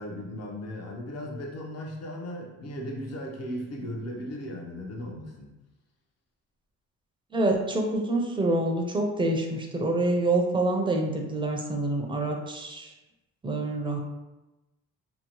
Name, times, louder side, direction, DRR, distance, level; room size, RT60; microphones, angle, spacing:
voice 1, 0.0-5.5, equal, 55° left, 0 dB, 0.7 m, -37 dB
voice 2, 7.3-12.9 13.4-14.0, right 2 dB, 15° right, 1 dB, 0.4 m, -26 dB
2.8 x 2.0 x 2.9 m, 1.0 s
cardioid pair, 90°, 30 cm